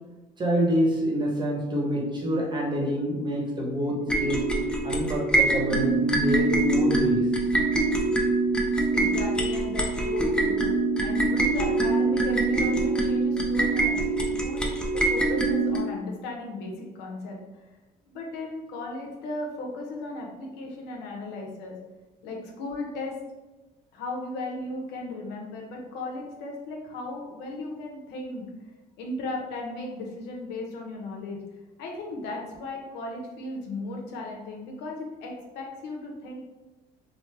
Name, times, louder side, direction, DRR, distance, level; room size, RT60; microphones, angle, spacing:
voice 1, 0.4-4.4 4.8-7.3, equal, 25° right, -2 dB, 0.9 m, -26 dB
sound 1, 4.1-15.8, right 2 dB, 5° left, 0.4 m, -24 dB
voice 2, 8.9-17.4 18.1-21.7 22.2-23.1 23.9-28.4 29.0-31.4 31.8-36.4, left 2 dB, 90° left, 0 dB, 0.7 m, -36 dB
3.0 x 2.0 x 3.2 m, 1.1 s
cardioid pair, 110°, 17 cm